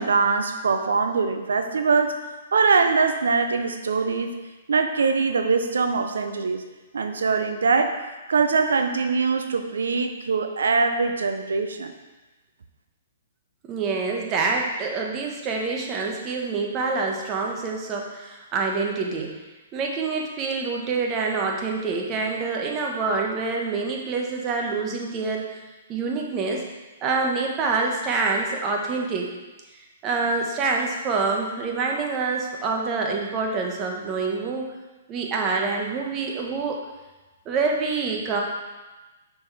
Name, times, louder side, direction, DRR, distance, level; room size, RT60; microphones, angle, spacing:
voice 1, 0.0-2.2 2.5-4.3 4.7-6.6 6.9-8.0 8.3-11.9, right 4 dB, 80° right, 7 dB, 0.7 m, -22 dB
voice 2, 13.6-19.4 19.7-25.6 25.9-26.6 27.0-29.3 29.7-34.7 35.1-36.8 37.4-38.4, right 4 dB, 30° right, 1 dB, 1.2 m, -26 dB
6.7 x 4.8 x 4.2 m, 1.2 s
hypercardioid pair, 130°, 0 cm